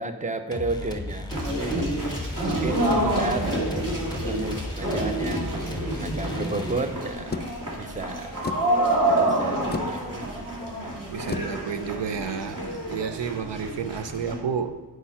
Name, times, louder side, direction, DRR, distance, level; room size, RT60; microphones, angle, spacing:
voice 1, 0.0-1.9 2.5-3.5 4.1-7.5 7.8-8.4 9.2-11.0 13.2-13.3, right 3 dB, 20° right, 0.7 m, -33 dB
sound 1, 0.5-7.2, left 2 dB, 10° left, 0.9 m, -35 dB
sound 2, 1.3-14.3, right 1 dB, 45° right, 2.8 m, -28 dB
Car Door Opening A, 7.3-12.9, left 4 dB, 25° left, 0.4 m, -38 dB
voice 2, 11.1-12.6 12.9-14.8, right 6 dB, 80° right, 0.6 m, -30 dB
8.7 x 4.9 x 5.6 m
wide cardioid pair, 55°, 42 cm